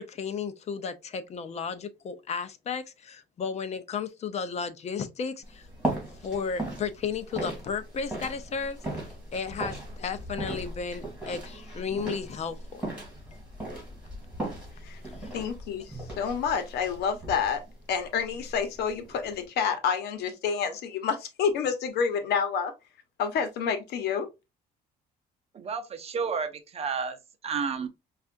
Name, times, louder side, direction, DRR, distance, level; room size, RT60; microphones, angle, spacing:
voice 1, 0.0-5.7 6.2-8.8 9.3-12.8 15.2-15.3, left 6 dB, 40° left, 0.6 m, -34 dB
sound 1, 5.4-19.5, right 1 dB, 5° right, 2.5 m, -38 dB
voice 2, 15.3-17.6 17.9-22.7 23.2-24.3, left 6 dB, 75° left, 0.9 m, -28 dB
voice 3, 25.5-27.2 27.4-27.9, right 5 dB, 35° right, 0.6 m, -31 dB
5.4 x 2.4 x 2.5 m
cardioid pair, 110°, 17 cm